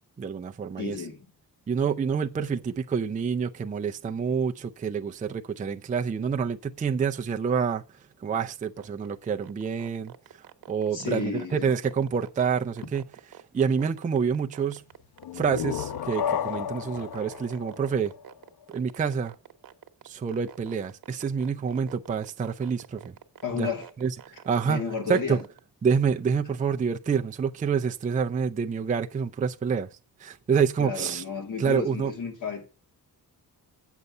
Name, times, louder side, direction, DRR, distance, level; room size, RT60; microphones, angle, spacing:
voice 1, 0.2-1.0 1.7-7.8 8.2-13.0 13.5-14.8 15.3-18.1 18.7-19.3 20.0-23.1 23.6-23.7 24.0-24.1 24.5-24.8 25.1-25.4 25.8-29.9 30.2-31.2 31.6-32.1, right 6 dB, 20° right, 0.4 m, -27 dB
voice 2, 0.8-1.3 10.9-11.7 23.4-23.9 24.6-25.4 30.8-32.6, left 5 dB, 55° left, 2.2 m, -32 dB
sound 1, 8.6-25.6, right 10 dB, 65° right, 1.0 m, -47 dB
sound 2, 15.2-18.8, left 9 dB, 70° left, 0.8 m, -33 dB
8.2 x 6.6 x 5.4 m
wide cardioid pair, 140°, 38 cm